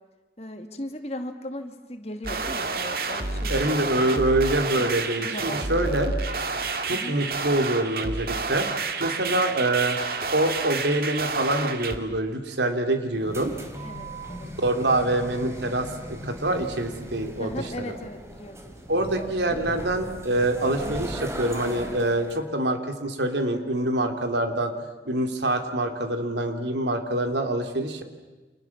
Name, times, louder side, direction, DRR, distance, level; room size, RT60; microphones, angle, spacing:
voice 1, 0.4-4.2 4.7-6.0 6.9-7.2 13.8-14.5 17.4-18.6, left 1 dB, 35° left, 6 dB, 2.3 m, -38 dB
sound 1, 2.2-12.0, right 3 dB, 55° right, 2.1 m, -29 dB
voice 2, 3.5-6.1 6.8-8.7 9.0-10.0 10.3-13.5 14.6-17.5 18.9-24.7 25.0-28.0, right 1 dB, 80° right, 6 dB, 3.2 m, -25 dB
sound 2, 13.1-22.4, right 1 dB, 15° right, 3.3 m, -38 dB
29.5 x 27.0 x 7.4 m, 1.2 s
head